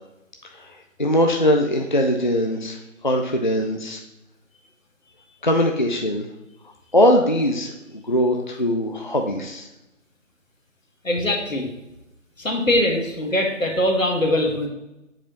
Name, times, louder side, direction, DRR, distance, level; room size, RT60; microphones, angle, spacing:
voice 1, 1.0-2.8 3.0-4.0 5.4-6.3 6.9-9.7, equal, 40° left, 2 dB, 0.5 m, -21 dB
voice 2, 11.0-11.7 12.4-14.7, left 1 dB, 90° left, 1 dB, 1.6 m, -22 dB
7.1 x 4.8 x 2.9 m, 0.93 s
figure-of-eight pair, 160°, 39 cm